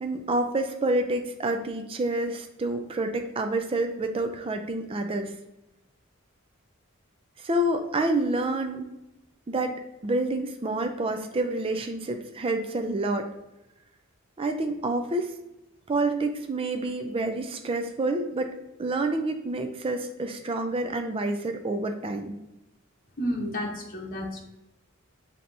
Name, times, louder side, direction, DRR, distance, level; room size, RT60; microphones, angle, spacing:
voice 1, 0.0-5.3 7.4-8.9 9.5-13.3 14.4-15.3 15.9-18.5 18.8-22.4, right 2 dB, 25° right, 6 dB, 0.4 m, -28 dB
voice 2, 23.2-24.4, equal, 40° left, -2 dB, 0.8 m, -31 dB
7.3 x 2.8 x 2.6 m, 0.92 s
head